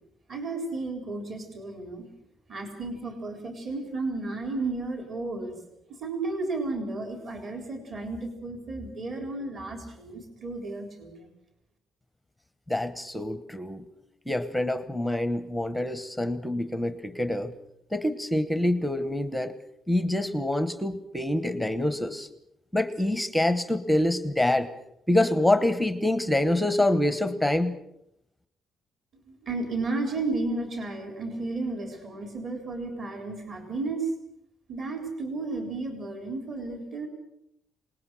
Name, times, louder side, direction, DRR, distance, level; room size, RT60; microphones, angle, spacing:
voice 1, 0.3-2.1 2.5-5.6 6.0-11.3 29.1-34.1 34.7-37.1, right 3 dB, 35° right, 4 dB, 3.9 m, -33 dB
voice 2, 12.7-13.8 14.3-17.5 17.9-19.6 19.9-22.3 22.7-24.7 25.1-27.8, left 1 dB, ahead, 11 dB, 1.0 m, -26 dB
26.5 x 20.0 x 6.3 m, 0.79 s
cardioid pair, 170°, 0 cm